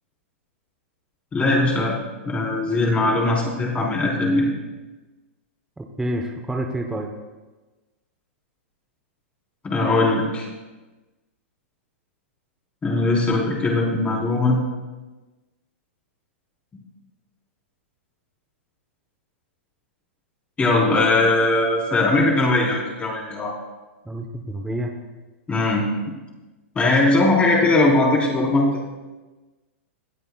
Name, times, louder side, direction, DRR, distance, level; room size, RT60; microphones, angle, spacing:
voice 1, 1.3-2.0 2.3-4.5 9.6-10.5 12.8-14.6 20.6-23.5 25.5-25.9 26.7-28.9, left 2 dB, 20° left, -3 dB, 4.1 m, -20 dB
voice 2, 5.8-7.1 24.0-24.9, right 1 dB, 5° right, 2 dB, 1.0 m, -28 dB
20.5 x 13.5 x 2.4 m, 1.2 s
hypercardioid pair, 130°, 7 cm